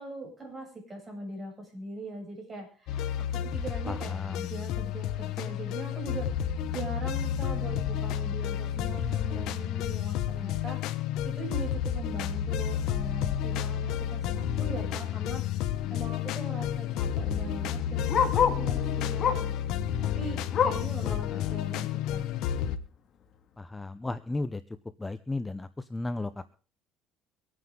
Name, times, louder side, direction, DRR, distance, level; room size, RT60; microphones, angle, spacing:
voice 1, 0.0-10.8 11.2-15.4 15.9-19.5 20.0-22.2, right 2 dB, 20° right, 1 dB, 7.9 m, -41 dB
sound 1, 2.9-22.8, left 10 dB, 65° left, 1.2 m, -31 dB
voice 2, 3.9-4.4 21.0-21.5 23.6-24.6 25.0-26.4, left 2 dB, 10° left, 12 dB, 0.7 m, -35 dB
Bark, 15.0-15.2 15.6-15.7 15.9-18.7 19.2-19.6 20.0-21.0 21.4-21.5 21.9-22.0 22.7-22.8, left 7 dB, 40° left, 2.1 m, -29 dB
24.5 x 9.4 x 3.8 m, 0.39 s
cardioid pair, 125°, 0 cm